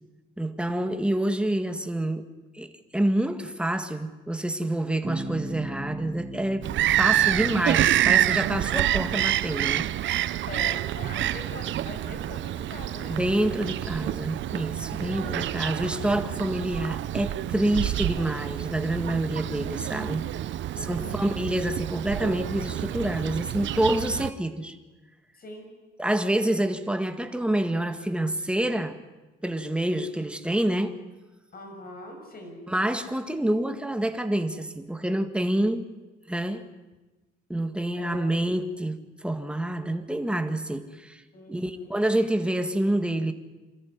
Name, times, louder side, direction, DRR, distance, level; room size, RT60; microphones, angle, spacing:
voice 1, 0.4-2.3 2.5-9.9 13.1-20.3 20.8-24.8 26.0-29.0 29.4-31.0 32.7-35.9 36.3-36.7 37.5-41.2 41.5-43.3, right 1 dB, 5° right, 8 dB, 1.9 m, -27 dB
Bass guitar, 5.0-8.8, right 1 dB, 30° right, 5.8 m, -39 dB
Bird vocalization bird call bird song, 6.6-24.3, right 13 dB, 70° right, 0.7 m, -28 dB
voice 2, 10.5-13.2 15.0-15.5 20.7-21.3 25.3-25.7 31.5-32.6 38.0-38.3 41.3-42.0, left 2 dB, 50° left, 4 dB, 6.6 m, -42 dB
26.0 x 14.0 x 9.7 m, 1.1 s
cardioid pair, 90°, 20 cm